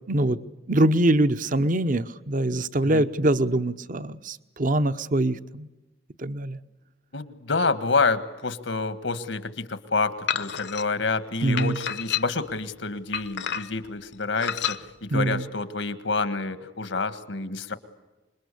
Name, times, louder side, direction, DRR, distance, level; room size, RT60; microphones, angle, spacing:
voice 1, 0.1-0.4 0.7-5.7 6.2-6.6 11.4-11.8 15.1-15.4, right 1 dB, 45° right, 13 dB, 0.9 m, -23 dB
voice 2, 7.1-17.7, left 3 dB, 85° left, 12 dB, 1.7 m, -28 dB
sound 1, 10.3-10.8 11.6-12.5 13.1-13.9 14.4-14.8, left 8 dB, 70° left, 1.0 m, -29 dB
26.5 x 21.5 x 8.4 m, 1.1 s
head